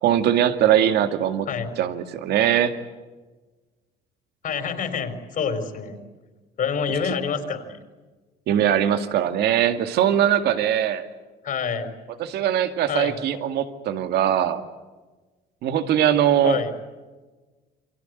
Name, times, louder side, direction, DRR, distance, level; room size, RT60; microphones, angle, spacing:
voice 1, 0.0-1.5 1.8-2.7 8.5-11.1 12.2-14.6 15.6-16.6, right 10 dB, 75° right, 8 dB, 2.3 m, -21 dB
voice 2, 0.7-1.1 1.5-1.7 4.4-6.0 6.6-7.7 11.4-11.9 12.9-13.2 16.4-16.7, left 6 dB, 55° left, 7 dB, 4.7 m, -27 dB
29.0 x 24.0 x 8.0 m, 1.3 s
cardioid pair, 110°, 17 cm